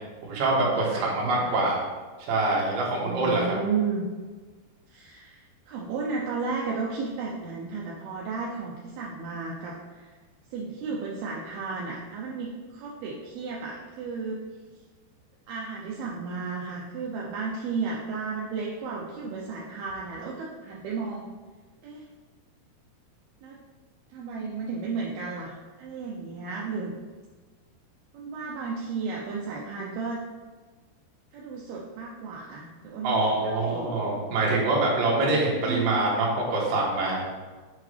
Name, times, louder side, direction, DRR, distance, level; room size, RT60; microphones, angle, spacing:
voice 1, 0.2-1.8 2.3-3.5 33.0-37.2, right 2 dB, 60° right, -4 dB, 2.8 m, -25 dB
voice 2, 3.0-4.1 4.9-10.1 10.5-14.4 15.5-21.3 21.8-22.1 23.4-23.6 24.1-26.9 28.1-30.2 31.3-33.9 35.5-36.0, right 4 dB, 75° right, -3 dB, 2.4 m, -33 dB
7.4 x 5.9 x 3.3 m, 1.4 s
omnidirectional pair, 5.1 m